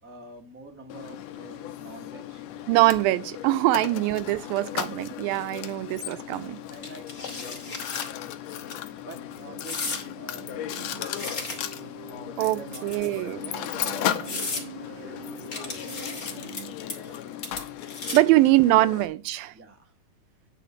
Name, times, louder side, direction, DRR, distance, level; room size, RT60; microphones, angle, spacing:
voice 1, 0.0-2.4 6.0-8.4 9.0-11.5 12.3-17.6 18.1-18.4 19.5-19.9, right 2 dB, 20° right, 0.3 m, -48 dB
Mechanisms, 0.9-19.1, left 11 dB, 90° left, 1.5 m, -36 dB
sound 1, 1.1-16.7, right 10 dB, 70° right, 1.7 m, -48 dB
voice 2, 2.7-6.6 12.4-13.4 18.1-19.5, right 17 dB, 85° right, 2.5 m, -23 dB
sound 2, 6.8-8.1 8.5-8.7 9.6-10.0 10.7-11.9 12.7-13.3 13.8-13.9 14.2-14.7 15.5-16.6 16.9-17.2 17.4-18.4, left 3 dB, 30° left, 2.2 m, -35 dB
9.4 x 4.6 x 6.8 m
omnidirectional pair, 4.1 m